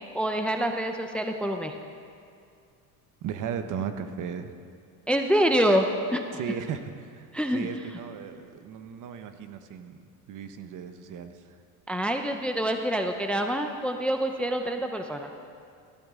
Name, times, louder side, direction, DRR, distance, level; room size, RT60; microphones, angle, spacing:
voice 1, 0.1-1.7 5.1-6.2 7.3-7.7 11.9-15.3, equal, 5° left, 5 dB, 0.5 m, -26 dB
voice 2, 3.2-4.5 6.3-10.0 10.3-11.6, right 7 dB, 50° right, 9 dB, 0.9 m, -36 dB
16.0 x 12.5 x 3.7 m, 2.3 s
cardioid pair, 120°, 40 cm